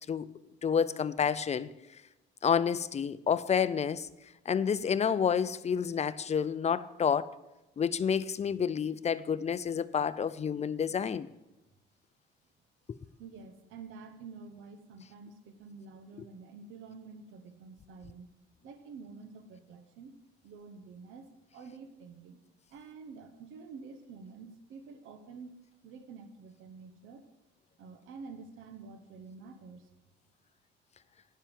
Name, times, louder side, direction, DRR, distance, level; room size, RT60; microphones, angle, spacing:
voice 1, 0.6-1.7 2.4-4.1 4.5-7.4 7.8-11.3, left 7 dB, 35° left, 0.5 m, -29 dB
voice 2, 13.2-18.3 18.6-20.1 20.4-22.4 22.7-25.6 25.8-27.2 27.8-29.9, right 4 dB, 85° right, 0.9 m, -49 dB
9.9 x 5.7 x 7.5 m
cardioid pair, 90°, 20 cm